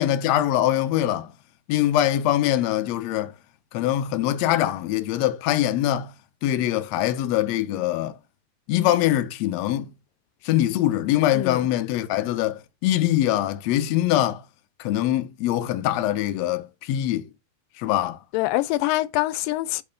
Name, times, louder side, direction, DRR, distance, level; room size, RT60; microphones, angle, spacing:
voice 1, 0.0-1.3 1.7-3.3 3.7-6.1 6.4-8.2 8.7-9.9 10.5-14.4 14.8-17.3 17.8-18.2, left 13 dB, 75° left, 1.7 m, -23 dB
voice 2, 11.3-11.7 18.3-19.8, left 17 dB, 90° left, 2.3 m, -24 dB
7.1 x 4.8 x 5.2 m
omnidirectional pair, 3.9 m